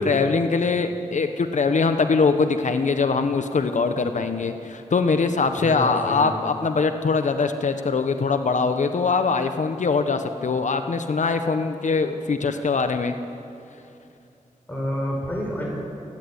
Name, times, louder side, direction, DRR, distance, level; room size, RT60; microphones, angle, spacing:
voice 1, 0.0-13.1, left 4 dB, 65° left, 7 dB, 1.0 m, -22 dB
voice 2, 5.6-6.3 14.7-15.6, equal, 15° left, -3 dB, 5.5 m, -28 dB
27.5 x 10.5 x 9.8 m, 2.7 s
cardioid pair, 65°, 14 cm